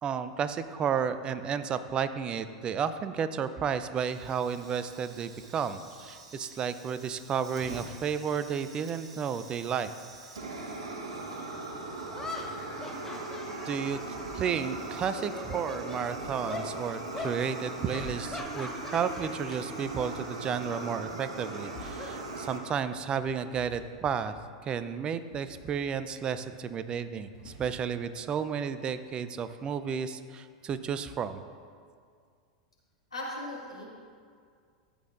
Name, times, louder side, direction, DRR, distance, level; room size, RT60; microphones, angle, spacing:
voice 1, 0.0-9.9 13.6-24.3 24.6-31.4, right 7 dB, 30° right, 12 dB, 0.5 m, -32 dB
Fire, 4.0-22.6, right 2 dB, 75° right, 1.3 m, -40 dB
sound 1, 11.3-11.4 12.1-14.8 15.1-16.0 16.5-16.7 17.1-17.4 17.9-19.6 19.9-20.2 21.4-22.8, left 3 dB, 15° left, 1.1 m, -42 dB
sound 2, 12.0-28.3, left 3 dB, 50° left, 2.1 m, -55 dB
voice 2, 33.1-33.9, left 1 dB, 90° left, -5 dB, 2.5 m, -37 dB
14.0 x 8.5 x 2.6 m, 2.1 s
figure-of-eight pair, 90°, 3 cm